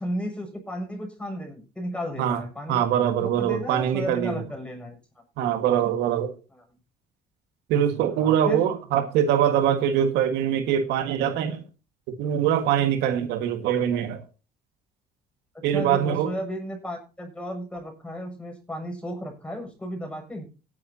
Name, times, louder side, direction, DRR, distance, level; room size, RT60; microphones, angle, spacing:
voice 1, 0.0-2.8 3.2-5.0 5.4-5.5 6.5-6.6 8.1-8.7 15.7-20.5, equal, 5° left, 7.1 m, -34 dB
voice 2, 2.7-4.4 5.4-6.3 7.7-11.6 12.1-14.2 15.6-16.3, right 9 dB, 90° right, 1.8 m, -23 dB
18.5 x 10.5 x 2.8 m
cardioid pair, 110°, 17 cm